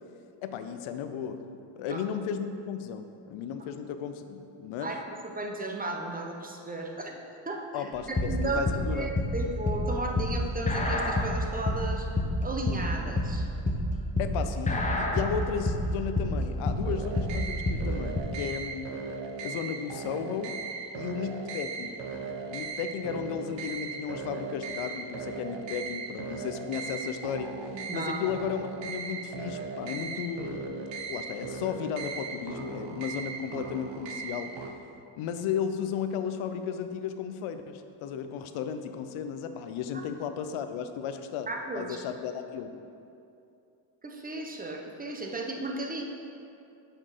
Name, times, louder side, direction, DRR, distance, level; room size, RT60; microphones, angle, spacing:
voice 1, 0.4-1.5 1.8-4.9 7.7-9.1 14.2-19.1 19.4-20.5 20.9-22.0 22.5-27.5 27.9-34.6 35.2-41.5 41.7-42.7, left 7 dB, 75° left, 8 dB, 0.7 m, -34 dB
voice 2, 5.3-7.2 7.5-7.9 8.2-12.1 12.4-13.5 27.7-28.2 41.5-42.0 44.0-46.0, right 2 dB, 15° right, 1 dB, 0.8 m, -34 dB
sound 1, 8.0-18.2, left 1 dB, 15° left, 0.8 m, -28 dB
sound 2, 16.8-34.7, right 4 dB, 65° right, 0.8 m, -38 dB
7.4 x 4.5 x 4.9 m, 2.6 s
cardioid pair, 90°, 49 cm